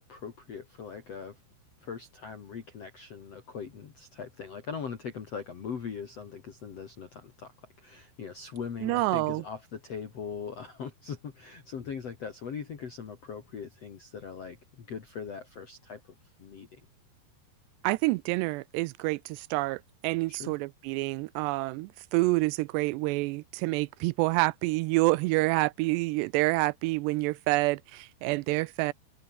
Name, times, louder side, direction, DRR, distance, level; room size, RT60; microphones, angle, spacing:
voice 1, 0.0-1.4 1.8-16.8 20.3-20.5, left 6 dB, 45° left, 2.8 m, -41 dB
voice 2, 8.8-9.4 17.8-28.9, right 22 dB, 85° right, 2.7 m, -28 dB
omnidirectional pair, 4.9 m